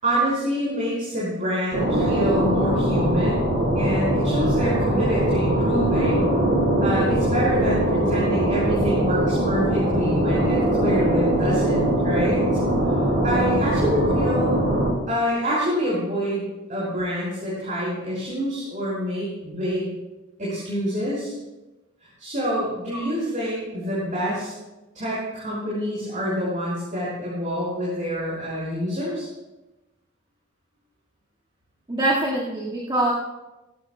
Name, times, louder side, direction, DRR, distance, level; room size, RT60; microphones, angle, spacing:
voice 1, 0.0-3.4 3.8-6.3 6.8-12.4 13.2-14.6 15.1-16.4 16.7-19.9 20.4-21.3 22.2-24.5 24.9-29.3, equal, 40° right, -8 dB, 5.6 m, -26 dB
sound 1, 1.7-14.9, right 1 dB, 70° right, 5.2 m, -21 dB
voice 2, 31.9-33.1, right 1 dB, 25° right, -5 dB, 2.0 m, -24 dB
18.5 x 16.0 x 2.3 m, 1.0 s
head